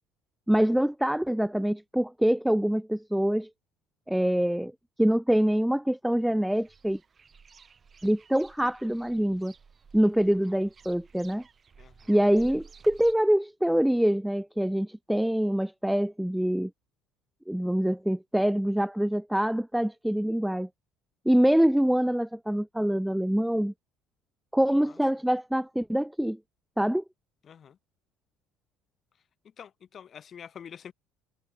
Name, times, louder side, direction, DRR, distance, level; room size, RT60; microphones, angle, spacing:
voice 1, 0.5-3.5 4.1-4.7 5.0-7.0 8.0-9.5 9.9-11.4 12.1-16.7 17.5-20.7 21.3-23.7 24.5-26.4 26.8-27.0, equal, 5° right, 0.4 m, -25 dB
sound 1, 6.5-13.1, right 6 dB, 30° right, 2.3 m, -54 dB
voice 2, 11.8-12.1 24.8-24.9 27.5-27.8 29.6-30.9, left 8 dB, 35° left, 1.3 m, -46 dB
cardioid pair, 115°, 0 cm